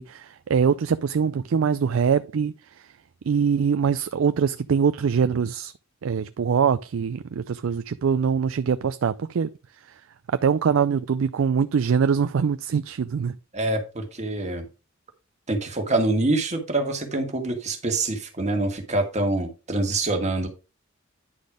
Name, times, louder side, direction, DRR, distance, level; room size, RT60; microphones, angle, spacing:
voice 1, 0.0-2.5 3.2-5.7 6.0-9.5 9.9-10.0 10.3-13.3, right 6 dB, 70° right, 0.4 m, -23 dB
voice 2, 13.5-14.6 15.5-20.5, right 2 dB, 35° right, 1.7 m, -25 dB
10.0 x 4.2 x 4.9 m
head